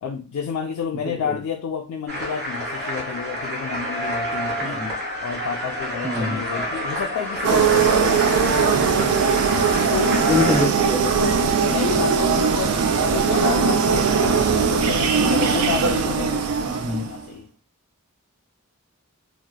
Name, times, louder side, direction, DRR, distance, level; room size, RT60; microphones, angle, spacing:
voice 1, 0.0-4.8 5.2-9.1 9.9-10.2 11.1-17.5, left 7 dB, 75° left, 0.3 m, -30 dB
voice 2, 1.1-1.4 4.6-4.9 6.0-6.4 10.2-11.3 16.6-17.1, left 2 dB, 15° right, 0.6 m, -25 dB
sound 1, 2.1-10.7, equal, 50° right, 1.2 m, -29 dB
sound 2, 7.4-17.2, right 5 dB, 80° right, 0.4 m, -20 dB
2.8 x 2.1 x 2.2 m
head